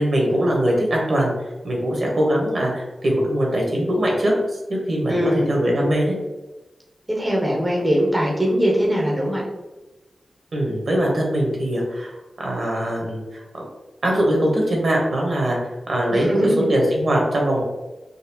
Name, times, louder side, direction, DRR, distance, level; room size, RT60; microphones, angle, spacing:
voice 1, 0.0-1.3 1.6-4.3 4.7-5.2 5.5-6.2 10.5-13.4 14.0-15.6 15.9-16.4 16.7-17.6, right 1 dB, 55° right, -1 dB, 1.0 m, -21 dB
voice 2, 5.1-5.5 7.1-9.4 16.1-16.7, equal, 10° right, -3 dB, 0.7 m, -21 dB
3.9 x 2.3 x 2.8 m, 1.1 s
wide cardioid pair, 115°, 0 cm